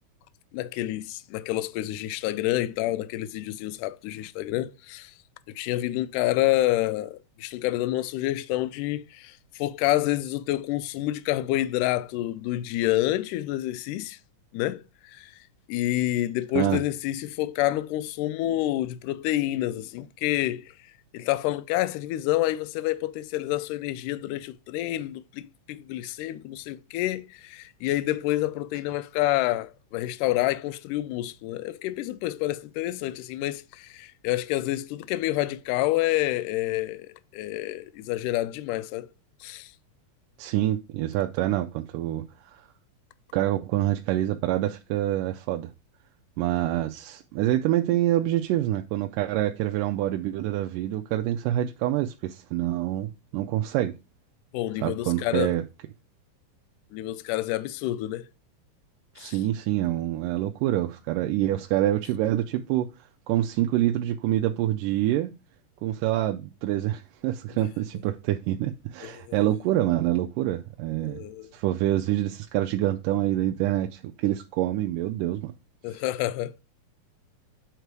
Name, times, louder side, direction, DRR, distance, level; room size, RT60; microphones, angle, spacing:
voice 1, 0.5-5.1 5.5-14.2 14.5-15.3 15.7-20.7 21.1-39.1 39.4-39.7 54.5-55.6 56.9-58.3 59.2-59.4 69.0-69.4 71.0-71.5 75.8-76.6, left 15 dB, 80° left, 2.0 m, -28 dB
voice 2, 40.4-42.6 43.3-45.7 46.4-53.9 54.8-55.6 59.2-62.9 63.3-65.3 65.8-71.3 71.5-75.5, right 13 dB, 85° right, 2.1 m, -26 dB
8.1 x 4.1 x 4.6 m
omnidirectional pair, 3.7 m